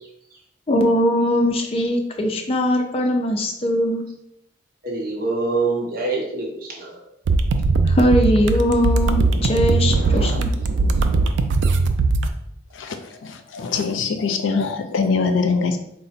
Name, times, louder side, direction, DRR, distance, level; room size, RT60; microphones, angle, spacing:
voice 1, 0.7-4.0 7.9-10.5, equal, 30° left, 3 dB, 0.4 m, -20 dB
voice 2, 4.8-7.0, right 3 dB, 50° right, -1 dB, 0.8 m, -25 dB
sound 1, 7.3-12.3, right 3 dB, 70° right, 0.3 m, -19 dB
voice 3, 13.2-15.8, left 4 dB, 90° left, 7 dB, 0.4 m, -22 dB
3.9 x 2.1 x 4.1 m, 0.77 s
head